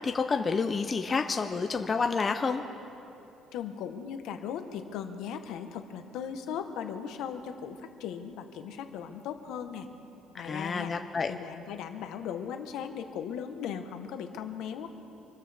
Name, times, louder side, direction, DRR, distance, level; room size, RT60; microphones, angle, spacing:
voice 1, 0.0-2.6 10.3-11.3, left 4 dB, 20° left, 6 dB, 0.5 m, -29 dB
voice 2, 3.5-9.9 10.4-10.9 11.3-14.9, left 8 dB, 65° left, 7 dB, 1.1 m, -38 dB
26.0 x 13.5 x 3.4 m, 2.9 s
cardioid pair, 175°, 0 cm